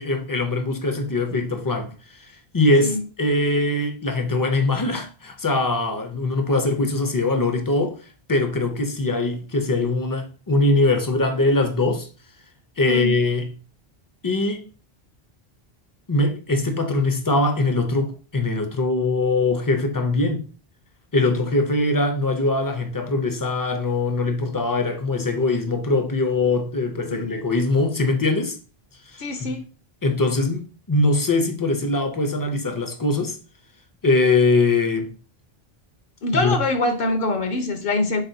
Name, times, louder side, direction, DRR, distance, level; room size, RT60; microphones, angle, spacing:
voice 1, 0.0-1.9 2.5-8.0 8.3-12.1 12.8-13.5 14.2-14.6 16.1-20.4 21.1-28.6 29.1-29.5 30.0-33.4 34.0-35.1 36.4-36.6, left 2 dB, 35° left, 0.3 m, -22 dB
voice 2, 29.2-29.6 36.2-38.2, left 2 dB, 65° left, 0.7 m, -24 dB
4.1 x 3.7 x 2.6 m
omnidirectional pair, 1.1 m